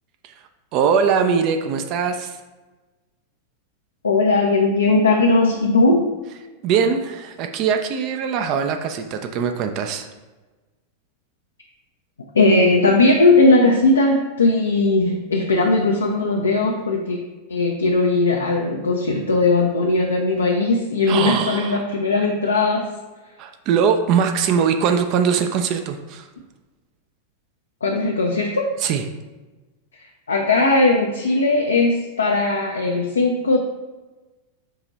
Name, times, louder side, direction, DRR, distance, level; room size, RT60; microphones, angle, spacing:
voice 1, 0.7-2.4 6.6-10.1 21.1-21.8 23.4-26.3 28.8-29.0, right 6 dB, 40° right, 6 dB, 0.4 m, -21 dB
voice 2, 4.0-6.0 12.3-17.2 17.5-22.9 27.8-28.7 30.3-33.6, left 2 dB, 75° left, 0 dB, 0.4 m, -18 dB
4.7 x 2.9 x 3.9 m, 1.2 s
figure-of-eight pair, 90°, 0 cm